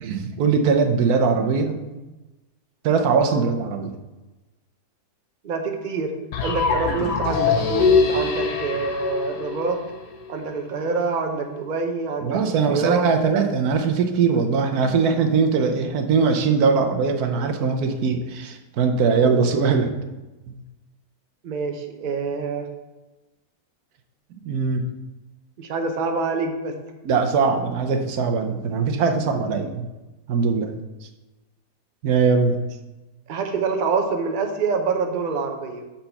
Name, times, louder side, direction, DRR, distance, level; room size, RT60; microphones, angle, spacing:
voice 1, 0.0-1.8 2.8-3.9 12.2-19.9 20.5-20.6 24.4-24.8 27.0-29.9 30.3-30.8 32.0-32.6, right 5 dB, 75° right, 5 dB, 1.2 m, -21 dB
voice 2, 5.4-6.1 6.4-9.8 10.3-13.1 19.2-19.5 21.4-22.7 25.6-26.8 33.3-35.8, right 4 dB, 40° right, 4 dB, 0.7 m, -26 dB
sound 1, 6.3-10.3, left 5 dB, 85° left, 1.4 m, -23 dB
6.5 x 4.4 x 5.7 m, 1.1 s
omnidirectional pair, 1.7 m